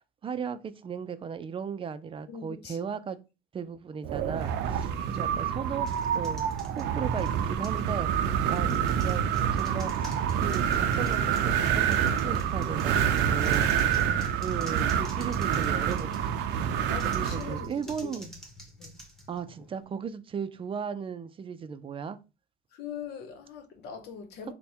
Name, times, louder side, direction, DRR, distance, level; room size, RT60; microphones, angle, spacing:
voice 1, 0.0-3.2 3.5-9.2 9.5-13.7 14.4-16.3 16.7-18.3 19.3-22.2, right 6 dB, 30° right, 0.4 m, -37 dB
voice 2, 2.3-2.9 4.7-5.1 8.5-8.9 13.3-14.3 16.9-18.3 18.8-19.0 22.7-24.5, left 6 dB, 80° left, 0.9 m, -43 dB
Wind, 4.0-17.7, right 8 dB, 85° right, 0.5 m, -27 dB
sound 1, 5.8-7.9 8.5-16.4 16.9-19.8, equal, 5° left, 1.2 m, -49 dB
3.3 x 2.2 x 4.3 m
cardioid pair, 110°, 17 cm